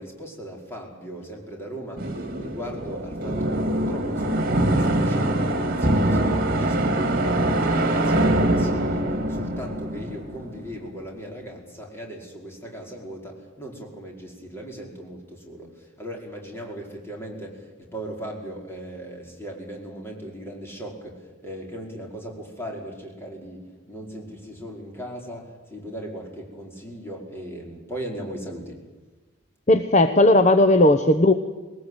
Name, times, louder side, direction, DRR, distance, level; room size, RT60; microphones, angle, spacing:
voice 1, 0.0-28.8, right 1 dB, 10° left, 0 dB, 5.0 m, -38 dB
sound 1, 2.0-10.8, right 1 dB, 45° right, 2.7 m, -23 dB
voice 2, 29.7-31.3, left 1 dB, 35° left, 9 dB, 0.9 m, -16 dB
21.0 x 19.0 x 9.1 m, 1.3 s
head